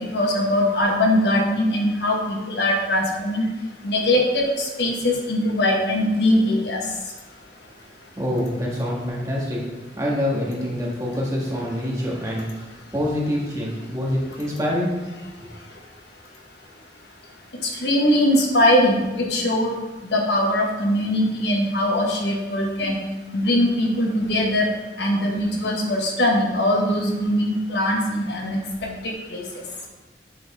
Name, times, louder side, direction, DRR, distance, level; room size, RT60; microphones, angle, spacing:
voice 1, 0.1-3.5 3.8-6.8 17.6-19.7 20.0-23.0 23.3-24.7 25.0-28.6 29.3-29.4, left 1 dB, 80° left, 0 dB, 1.4 m, -21 dB
voice 2, 8.1-9.6 10.0-12.5 12.9-14.9, left 1 dB, 20° right, -4 dB, 1.6 m, -25 dB
8.4 x 4.4 x 4.2 m, 1.2 s
head